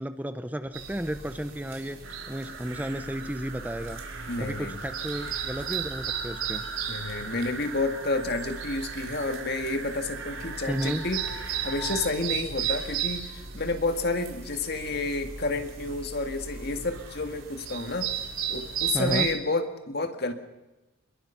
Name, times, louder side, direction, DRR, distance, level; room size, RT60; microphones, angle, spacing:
voice 1, 0.0-2.0 2.3-4.0 4.4-6.7 10.7-11.0 18.9-19.3, equal, 10° right, 10 dB, 0.7 m, -33 dB
sound 1, 0.7-19.4, right 8 dB, 75° right, 4.2 m, -36 dB
sound 2, 2.0-12.1, right 4 dB, 60° right, 2.6 m, -40 dB
voice 2, 4.3-4.8 6.9-11.2 11.6-18.1 18.5-20.3, left 3 dB, 50° left, 7 dB, 2.1 m, -30 dB
27.0 x 21.5 x 5.9 m, 1.1 s
head